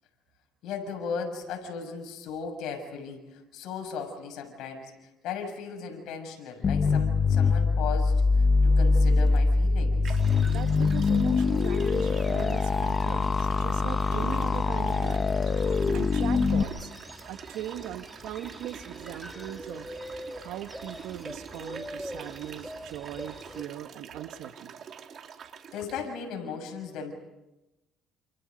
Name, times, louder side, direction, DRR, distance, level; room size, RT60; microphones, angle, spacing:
voice 1, 0.6-4.9 5.2-8.2 8.6-10.2 25.7-27.1, left 6 dB, 75° left, 4 dB, 7.0 m, -36 dB
sound 1, 6.6-16.6, left 4 dB, 40° left, 1.2 m, -23 dB
sound 2, 9.3-9.4 10.0-26.0, right 7 dB, 55° right, 3.1 m, -45 dB
sound 3, 10.2-23.6, equal, ahead, 2.7 m, -45 dB
voice 2, 10.5-15.4 15.9-16.9 17.3-19.9 20.4-24.7, right 12 dB, 80° right, 9 dB, 1.6 m, -39 dB
29.5 x 28.5 x 5.4 m, 0.96 s
cardioid pair, 95°, 0 cm